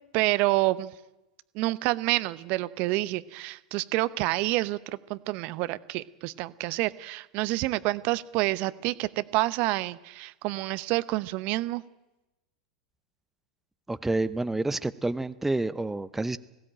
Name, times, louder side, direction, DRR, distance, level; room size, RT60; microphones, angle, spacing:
voice 1, 0.1-0.9 1.5-11.8, right 19 dB, 50° right, 16 dB, 0.8 m, -28 dB
voice 2, 13.9-16.4, right 2 dB, 5° right, 13 dB, 0.7 m, -28 dB
20.5 x 16.0 x 8.8 m, 0.99 s
hypercardioid pair, 90°, 3 cm